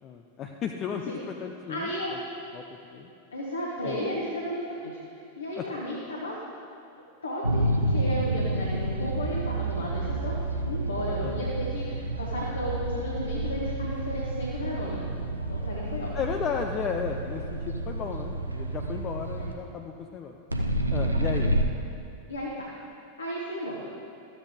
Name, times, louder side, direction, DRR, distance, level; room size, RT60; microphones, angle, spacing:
voice 1, 0.0-2.2 2.5-2.6 2.9-3.1 3.8-4.0 5.6-5.7 11.2-11.4 16.1-20.4 20.9-21.5, left 7 dB, 30° left, 3 dB, 0.5 m, -34 dB
voice 2, 1.7-2.2 3.3-6.4 7.2-15.0 15.5-16.1 19.4-19.5 22.3-22.7 23.2-23.8, equal, 75° left, -4 dB, 1.2 m, -34 dB
sound 1, 7.4-19.5 20.5-21.6, right 1 dB, 85° right, 0.6 m, -29 dB
13.0 x 8.0 x 3.6 m, 2.5 s
figure-of-eight pair, 90°, 0 cm